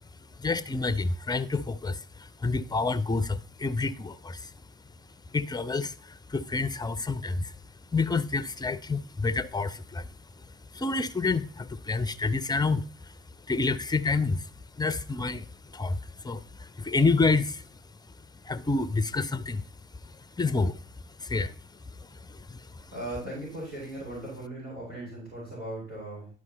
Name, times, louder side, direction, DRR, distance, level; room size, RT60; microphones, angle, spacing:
voice 1, 0.3-4.5 5.3-7.5 7.9-10.1 10.4-13.2 13.5-19.6 20.0-22.9, left 3 dB, 10° left, 0.5 m, -29 dB
voice 2, 22.9-26.3, right 1 dB, 80° right, 4.2 m, -38 dB
11.0 x 4.9 x 4.1 m
figure-of-eight pair, 50°, 39 cm